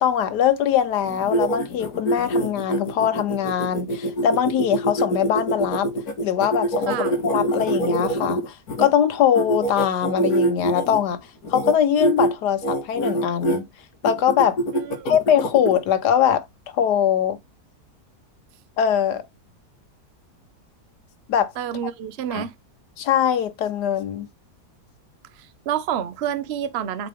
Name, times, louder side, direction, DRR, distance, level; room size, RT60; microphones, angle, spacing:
voice 1, 0.0-5.9 6.2-11.2 11.5-13.7 14.0-14.6 15.1-16.4 16.7-17.4 18.8-19.2 21.3-21.5 22.3-22.4 23.0-24.3, left 9 dB, 90° left, 1.5 m, -22 dB
sound 1, 1.1-8.9 9.3-11.0 11.4-11.7 12.0-12.3 12.6-13.6 14.0-15.8, right 1 dB, 65° left, 2.2 m, -24 dB
voice 2, 14.7-15.2 21.6-22.5 25.4-27.1, right 9 dB, 55° right, 0.8 m, -28 dB
7.8 x 4.1 x 3.5 m
omnidirectional pair, 1.7 m